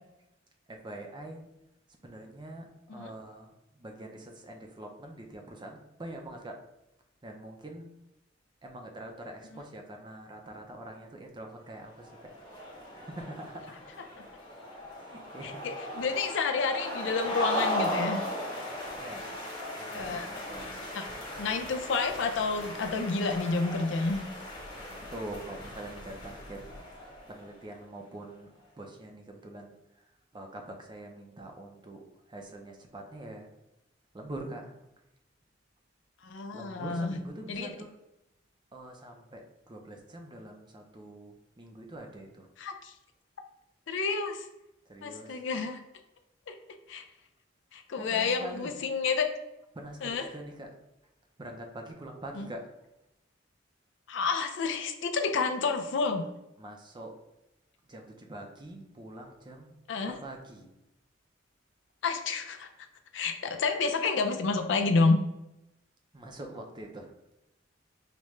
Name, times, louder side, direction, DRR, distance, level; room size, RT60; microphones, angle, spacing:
voice 1, 0.7-1.5 2.0-6.6 7.2-7.9 8.6-12.3 13.0-13.8 14.9-15.6 19.0-19.4 19.7-20.9 24.8-26.6 27.3-30.0 30.3-32.0 32.3-33.5 34.1-34.8 36.5-37.9 38.7-42.5 44.9-45.4 48.0-48.7 49.7-50.7 51.4-52.7 56.6-57.2 57.9-59.7 60.1-60.7 66.1-67.1, right 1 dB, 25° right, 3 dB, 0.5 m, -44 dB
sound 1, 11.9-27.5, equal, 25° left, 1.3 m, -37 dB
voice 2, 15.6-18.2 19.9-20.3 20.9-21.0 21.4-24.2 36.2-37.2 37.5-37.7 42.6-42.9 43.9-44.5 45.0-45.8 46.5-46.6 46.9-47.0 47.7-49.3 50.0-50.3 52.4-52.5 54.1-56.2 59.9-60.1 62.0-62.7 63.1-65.2, left 4 dB, 70° left, 6 dB, 0.4 m, -29 dB
4.9 x 2.1 x 3.1 m, 0.89 s
head